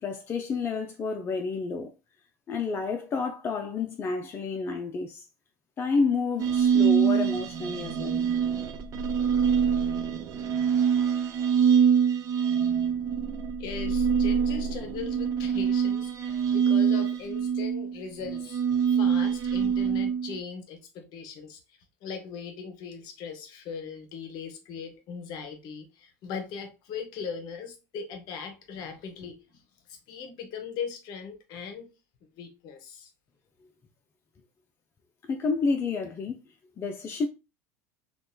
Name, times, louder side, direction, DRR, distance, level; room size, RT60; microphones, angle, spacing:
voice 1, 0.0-1.9 2.5-5.3 5.8-8.2 35.3-36.4 36.8-37.3, left 4 dB, 25° left, 0.3 m, -29 dB
sound 1, 6.4-20.4, right 7 dB, 40° right, 0.4 m, -25 dB
voice 2, 13.6-18.6 18.9-21.6 22.0-29.6 30.1-31.9 32.4-33.1, left 6 dB, 55° left, 0.7 m, -39 dB
2.9 x 2.1 x 2.2 m
hypercardioid pair, 80°, 9 cm